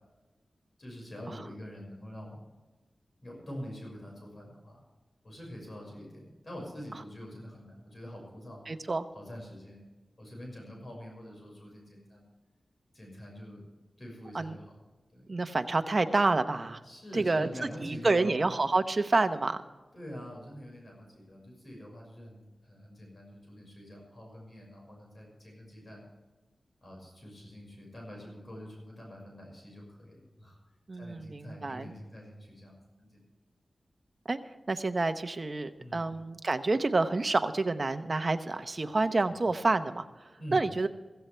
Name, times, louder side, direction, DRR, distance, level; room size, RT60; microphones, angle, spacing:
voice 1, 0.8-2.4 3.2-4.8 5.2-8.6 9.1-9.8 10.2-12.3 12.9-13.6 14.0-14.7 15.1-15.3 16.8-18.6 19.9-26.0 26.8-30.6 30.9-33.2 35.8-36.1 39.3-39.4 40.4-40.6, equal, 45° left, -1 dB, 5.8 m, -45 dB
voice 2, 8.7-9.1 14.3-14.6 15.3-16.8 17.1-17.5 17.8-19.6 30.9-31.9 34.2-34.4 34.7-40.1 40.5-40.9, right 3 dB, 45° right, 9 dB, 0.9 m, -28 dB
16.0 x 15.0 x 3.4 m, 1.2 s
wide cardioid pair, 75°, 0 cm